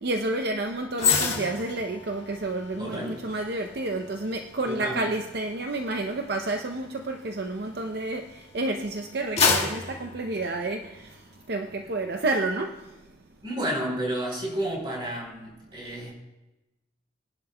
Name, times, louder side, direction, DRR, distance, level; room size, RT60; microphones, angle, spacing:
voice 1, 0.0-11.2 11.5-12.8, right 2 dB, 55° right, 4 dB, 0.6 m, -30 dB
sound 1, 0.9-8.4 8.8-11.2 11.6-11.8, left 5 dB, 35° left, 2.0 m, -30 dB
voice 2, 2.8-3.2 4.7-5.1 13.4-16.1, right 1 dB, 25° right, -1 dB, 3.6 m, -31 dB
22.0 x 11.0 x 2.2 m, 1.0 s
head